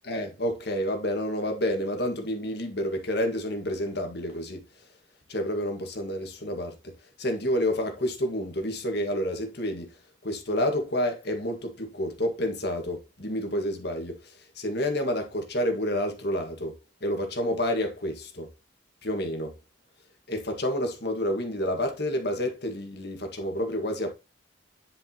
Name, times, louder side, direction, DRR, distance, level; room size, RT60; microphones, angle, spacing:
voice 1, 0.0-4.6 5.3-6.9 7.2-10.0 10.2-16.7 17.0-18.5 19.0-19.5 20.3-24.1, left 1 dB, 55° left, 1.7 m, -29 dB
10.0 x 5.2 x 2.9 m
head